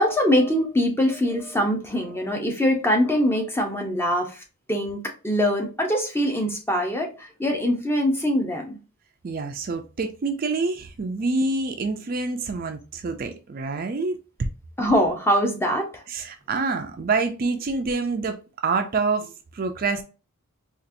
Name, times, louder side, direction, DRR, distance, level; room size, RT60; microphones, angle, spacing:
voice 1, 0.0-4.4 4.7-8.8 14.8-16.0, equal, 10° left, 0.6 m, -23 dB
voice 2, 9.2-14.2 16.1-18.4 18.6-20.0, right 3 dB, 40° right, 0.4 m, -26 dB
4.0 x 2.5 x 2.6 m
head